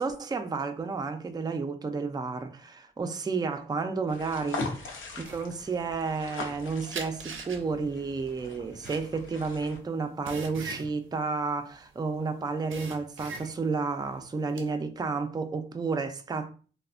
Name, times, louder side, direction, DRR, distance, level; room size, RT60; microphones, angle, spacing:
voice 1, 0.0-16.5, right 4 dB, 20° right, 0.3 m, -31 dB
sound 1, 4.1-9.8, left 3 dB, 80° left, 0.6 m, -40 dB
sound 2, 5.2-6.5 6.9-12.2 12.5-13.8 14.2-14.7, right 4 dB, 75° right, 0.5 m, -41 dB
3.1 x 2.1 x 2.4 m
cardioid pair, 70°, 20 cm